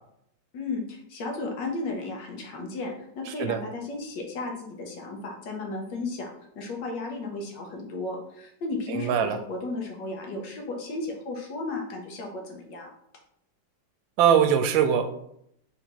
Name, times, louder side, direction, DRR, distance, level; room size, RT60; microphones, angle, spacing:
voice 1, 0.5-12.9, left 3 dB, 70° left, 2 dB, 1.4 m, -34 dB
voice 2, 8.9-9.4 14.2-15.1, right 8 dB, 80° right, 7 dB, 1.3 m, -21 dB
3.9 x 2.8 x 4.4 m, 0.74 s
omnidirectional pair, 2.1 m